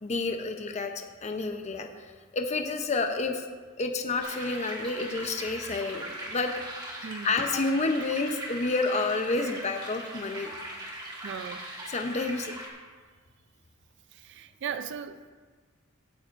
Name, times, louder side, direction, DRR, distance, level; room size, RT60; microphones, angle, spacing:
voice 1, 0.0-2.1 2.3-3.4 3.8-6.5 7.2-10.5 11.9-12.5, left 3 dB, 35° left, 5 dB, 0.6 m, -29 dB
sound 1, 4.2-12.7, right 1 dB, 20° right, 1.8 m, -39 dB
voice 2, 7.0-7.4 11.2-11.7 14.1-15.3, right 7 dB, 60° right, 11 dB, 0.4 m, -37 dB
16.5 x 9.0 x 2.5 m, 1.5 s
head